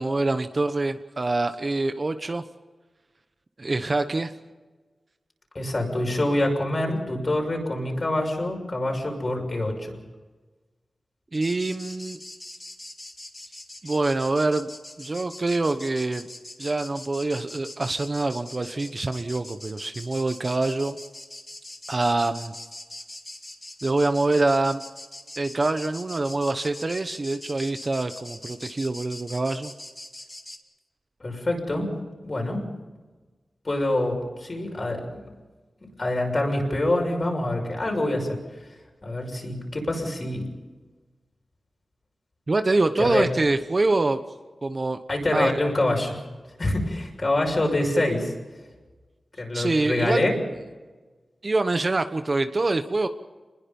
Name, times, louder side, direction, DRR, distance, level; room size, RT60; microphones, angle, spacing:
voice 1, 0.0-2.4 3.6-4.3 11.3-12.2 13.8-14.7 15.0-16.3 16.6-21.0 21.9-22.5 23.8-24.8 25.4-29.7 42.5-44.2 44.6-45.0 45.3-45.5 49.5-50.2 51.4-53.1, right 2 dB, 35° right, 9 dB, 1.0 m, -25 dB
voice 2, 5.5-10.0 31.2-31.9 32.2-32.6 33.6-35.2 36.0-38.4 39.0-40.4 43.0-43.3 45.1-46.2 46.6-48.3 49.4-50.3, left 1 dB, 35° left, 1 dB, 6.4 m, -25 dB
sound 1, 11.3-30.6, left 1 dB, 20° left, 2.4 m, -42 dB
28.0 x 21.0 x 5.5 m, 1.3 s
wide cardioid pair, 120°, 0 cm